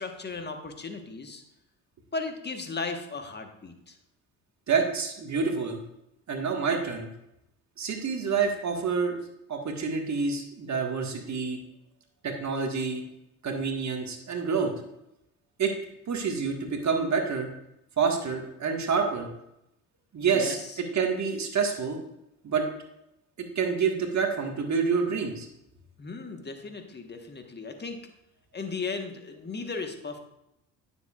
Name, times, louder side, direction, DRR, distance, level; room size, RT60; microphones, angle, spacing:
voice 1, 0.0-1.4 2.1-3.9 20.3-20.8 26.0-28.1 28.5-30.2, left 4 dB, 25° left, 5 dB, 1.3 m, -36 dB
voice 2, 4.7-5.8 6.3-7.1 7.8-9.2 9.5-11.6 12.2-13.0 13.4-14.7 15.6-15.7 16.1-17.5 18.0-19.3 20.1-20.6 20.9-22.0 22.4-22.6 23.6-25.5, right 5 dB, 45° right, 3 dB, 1.6 m, -27 dB
9.5 x 7.2 x 2.4 m, 0.82 s
hypercardioid pair, 60°, 40 cm